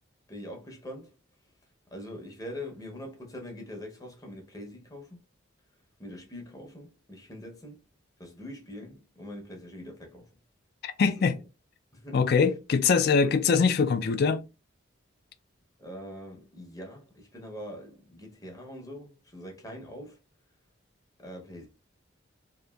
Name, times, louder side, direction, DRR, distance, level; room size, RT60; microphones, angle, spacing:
voice 1, 0.3-1.2 1.9-5.2 6.0-7.8 8.2-10.4 11.0-11.2 11.9-12.3 15.8-20.2 21.2-21.7, left 1 dB, 20° left, 0.7 m, -43 dB
voice 2, 10.8-11.3 12.1-14.4, left 5 dB, 50° left, 0.3 m, -23 dB
2.8 x 2.4 x 2.3 m
head